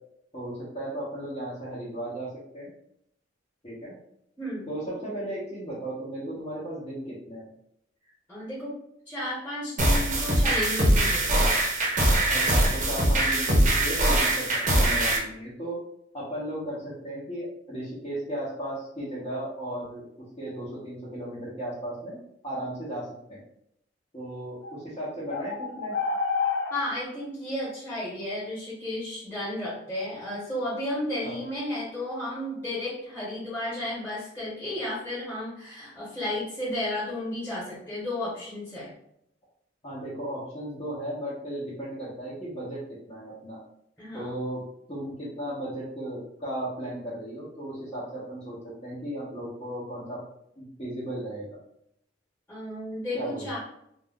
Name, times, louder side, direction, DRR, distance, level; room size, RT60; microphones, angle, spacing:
voice 1, 0.3-2.7 3.6-4.0 4.7-7.5 12.3-15.8 16.1-20.0 20.4-22.2 22.4-23.4 24.1-26.0 31.2-31.4 39.8-43.6 44.1-44.6 44.9-50.2 50.6-51.5 53.1-53.6, right 1 dB, 30° left, -10 dB, 0.8 m, -35 dB
voice 2, 4.4-4.7 8.3-8.7 9.1-11.4 26.7-38.9 44.0-44.3 52.5-53.6, left 1 dB, 10° left, -7 dB, 1.2 m, -33 dB
sound 1, 9.8-15.2, right 1 dB, 40° right, 0.7 m, -22 dB
sound 2, 24.6-24.8 25.3-26.8, left 5 dB, 80° left, 0.5 m, -29 dB
2.4 x 2.2 x 3.5 m, 0.75 s
head